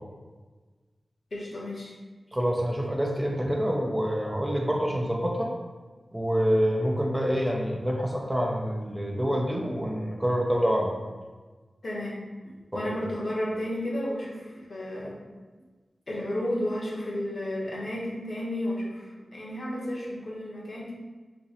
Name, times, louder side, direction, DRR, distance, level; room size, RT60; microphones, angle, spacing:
voice 1, 1.3-1.9 11.8-12.2 12.7-15.2 16.1-19.0 19.3-20.9, left 1 dB, 60° left, -5 dB, 0.9 m, -32 dB
voice 2, 2.3-5.5 6.1-10.9 12.7-12.9, equal, 20° right, -1 dB, 0.6 m, -26 dB
2.9 x 2.6 x 4.0 m, 1.3 s
cardioid pair, 55°, 0 cm